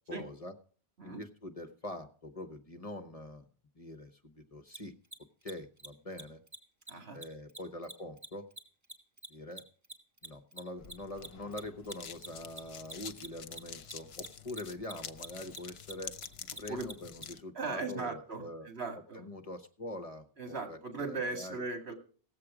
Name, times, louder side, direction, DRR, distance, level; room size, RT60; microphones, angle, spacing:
voice 1, 0.1-0.5 1.0-3.5 3.7-4.9 5.4-6.4 7.1-8.4 9.3-9.6 10.2-16.1 16.6-18.7 19.1-21.6, left 1 dB, 35° left, 7 dB, 1.1 m, -44 dB
Mechanisms, 4.7-4.8 5.0-5.2 5.4-5.5 5.8-5.9 6.1-6.2 6.5-6.6 6.8-6.9 7.2-9.9 10.2-17.3, right 2 dB, 15° right, 1.2 m, -45 dB
voice 2, 6.9-7.2 16.7-16.9 17.5-19.3 20.4-21.9, right 3 dB, 80° right, 4 dB, 2.4 m, -38 dB
sound 1, 10.8-17.4, left 7 dB, 75° left, 0.9 m, -48 dB
18.0 x 7.6 x 4.9 m, 0.43 s
omnidirectional pair, 1.1 m